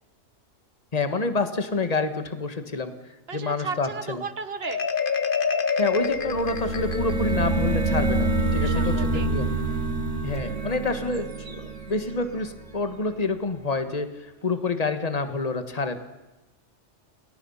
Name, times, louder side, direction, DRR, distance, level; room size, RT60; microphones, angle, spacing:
voice 1, 0.9-2.9 3.3-4.2 5.8-9.5 10.2-14.1 14.4-16.0, left 3 dB, 30° left, 9 dB, 1.7 m, -28 dB
voice 2, 3.3-4.9 8.6-9.3, right 5 dB, 55° right, 13 dB, 1.4 m, -35 dB
Marimba xylophone, 4.6-7.4, left 5 dB, 45° left, 1.3 m, -27 dB
sound 1, 6.1-12.8, right 2 dB, 85° right, 2.3 m, -27 dB
30.0 x 21.5 x 5.7 m, 1.1 s
omnidirectional pair, 1.2 m